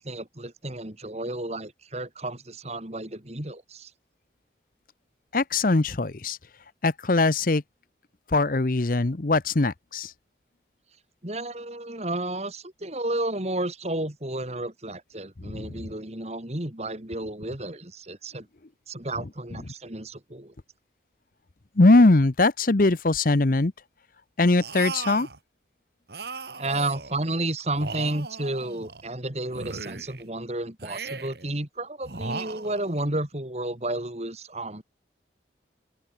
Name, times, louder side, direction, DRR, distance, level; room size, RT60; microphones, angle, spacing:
voice 1, 0.0-3.9 11.2-18.5 18.9-20.5 26.6-34.8, right 2 dB, 35° right, 2.5 m, -32 dB
voice 2, 5.3-6.4 6.8-7.6 8.3-10.1 15.5-15.7 21.8-23.7 24.4-25.3, left 2 dB, 50° left, 0.8 m, -21 dB
sound 1, 24.6-25.4 26.1-27.2 27.7-29.1 29.5-30.3 30.8-31.5 32.0-33.1, right 4 dB, 60° right, 1.8 m, -37 dB
open air
head